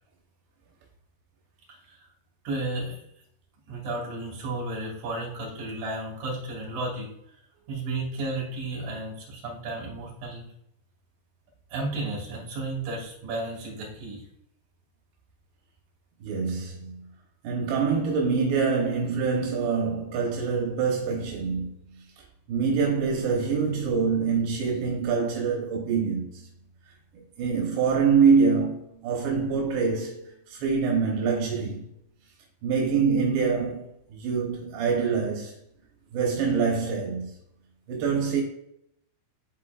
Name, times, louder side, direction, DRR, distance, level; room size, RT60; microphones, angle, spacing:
voice 1, 2.4-3.0 3.7-7.1 7.7-10.4 11.7-14.2, right 2 dB, 60° right, 3.7 m, -33 dB
voice 2, 16.2-17.1 17.4-26.5 27.4-31.9 32.6-35.5 36.1-37.3 37.9-38.4, right 5 dB, 90° right, 3.2 m, -25 dB
11.0 x 4.2 x 2.4 m
omnidirectional pair, 4.7 m